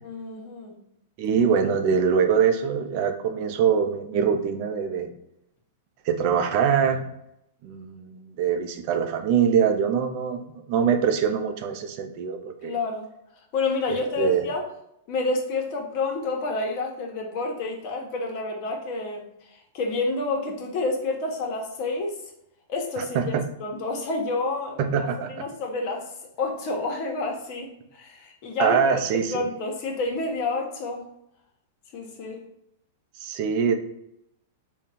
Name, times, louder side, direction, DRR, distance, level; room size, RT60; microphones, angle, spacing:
voice 1, 0.0-0.7 12.6-13.1 13.5-14.7 15.1-22.2 22.7-23.2 23.6-26.1 26.4-28.8 29.1-31.1 31.9-32.4, left 3 dB, 45° left, 1 dB, 1.0 m, -29 dB
voice 2, 1.2-5.1 6.0-7.0 7.6-12.7 14.2-14.4 23.0-23.4 24.8-25.4 28.6-29.5 33.2-33.7, right 7 dB, 50° right, 6 dB, 0.6 m, -23 dB
3.7 x 2.3 x 4.3 m, 0.79 s
hypercardioid pair, 115°, 0 cm